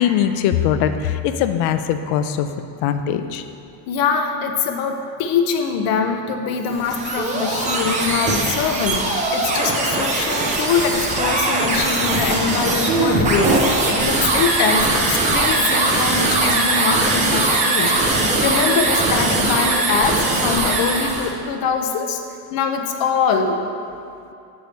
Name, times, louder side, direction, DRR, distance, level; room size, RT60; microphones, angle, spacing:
voice 1, 0.0-2.5 2.8-3.4, left 9 dB, 85° left, 9 dB, 0.6 m, -20 dB
voice 2, 3.9-9.1 9.3-22.2 22.5-23.6, left 5 dB, 45° left, 5 dB, 0.7 m, -23 dB
sound 1, 6.7-21.3, right 2 dB, 15° right, 0.3 m, -20 dB
6.8 x 4.9 x 6.4 m, 2.6 s
cardioid pair, 175°, 48 cm